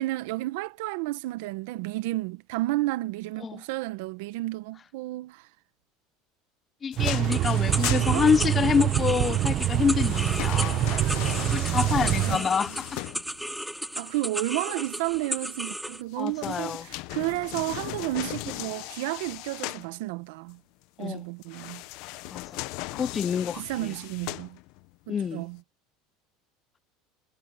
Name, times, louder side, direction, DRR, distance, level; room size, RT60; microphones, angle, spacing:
voice 1, 0.0-5.5 7.8-8.7 12.0-12.8 14.0-20.6 21.0-21.8 23.5-24.6 25.1-25.6, right 19 dB, 80° right, 1.1 m, -32 dB
voice 2, 6.8-10.9 11.5-13.0 16.2-16.8 21.0-21.2 22.3-22.6 22.9-23.6 25.1-25.4, left 6 dB, 20° left, 0.6 m, -27 dB
sound 1, 6.9-8.8 9.7-13.6 16.1-19.9 21.4-24.9 25.4-25.5, left 21 dB, 60° left, 0.7 m, -37 dB
sound 2, 7.0-12.4, right 13 dB, 40° right, 0.9 m, -25 dB
sound 3, 7.3-16.0, right 1 dB, ahead, 2.1 m, -35 dB
cardioid pair, 155°, 0 cm